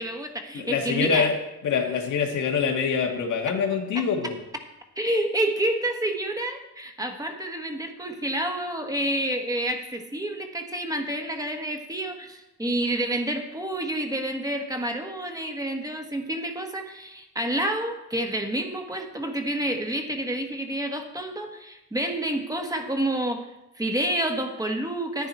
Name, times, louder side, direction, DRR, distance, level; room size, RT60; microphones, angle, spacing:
voice 1, 0.0-1.3 3.9-4.1 5.0-23.5 23.7-25.3, right 1 dB, 10° right, 4 dB, 1.5 m, -29 dB
voice 2, 0.5-1.3 1.6-4.4, left 6 dB, 75° left, 2 dB, 1.9 m, -25 dB
10.5 x 9.7 x 4.4 m, 0.94 s
cardioid pair, 90°, 30 cm